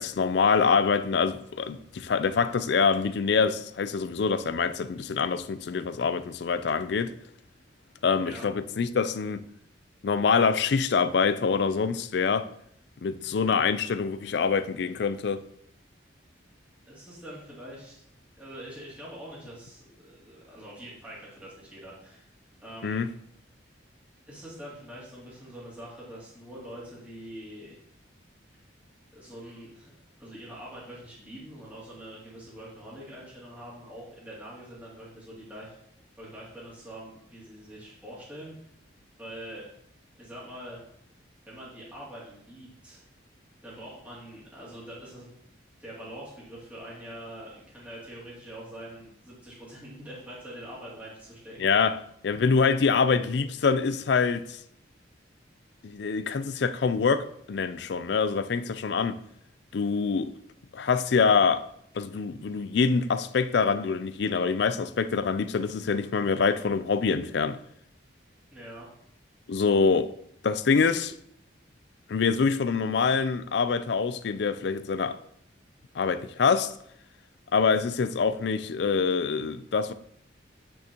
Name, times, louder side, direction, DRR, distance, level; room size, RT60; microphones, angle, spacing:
voice 1, 0.0-7.1 8.0-9.4 10.0-12.5 13.0-15.4 22.8-23.1 51.6-52.0 52.2-54.6 55.8-59.2 59.7-60.3 60.7-61.6 61.9-67.6 69.5-70.1 70.4-71.1 72.1-75.2 76.0-76.7 77.5-79.9, left 5 dB, 60° left, 0.4 m, -25 dB
voice 2, 8.1-8.5 16.9-18.0 18.4-22.3 22.6-23.0 24.3-27.7 29.1-29.9 30.2-35.8 36.2-38.5 39.2-39.7 40.2-40.8 41.5-43.0 43.6-45.3 45.8-51.7 68.5-68.9, equal, 10° right, 2.5 m, -44 dB
8.4 x 6.2 x 2.9 m
head